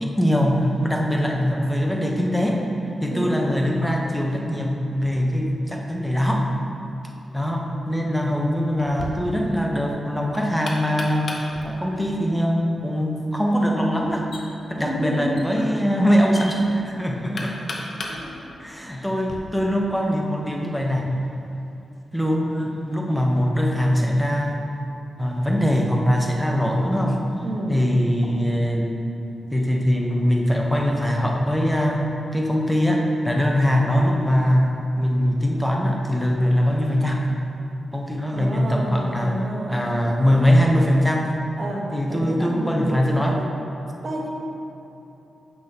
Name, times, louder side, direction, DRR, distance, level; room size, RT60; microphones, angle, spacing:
voice 1, 0.0-2.6 3.0-6.5 7.3-11.3 11.6-14.3 14.7-17.6 18.6-21.1 22.1-24.6 25.2-27.2 27.7-29.0 29.5-32.0 32.3-34.7 34.9-37.3 37.9-39.4 39.7-41.3 41.9-43.4, equal, 5° left, -1 dB, 0.9 m, -22 dB
voice 2, 3.1-3.5 14.8-15.5 18.1-18.4 27.4-27.8 38.3-39.8 40.4-40.9 41.6-41.8 42.1-43.4 44.0-44.3, right 1 dB, 55° right, -2 dB, 1.2 m, -30 dB
Knock, 8.8-19.4, left 2 dB, 60° left, 0.9 m, -38 dB
7.8 x 6.2 x 2.9 m, 2.9 s
cardioid pair, 60°, 0 cm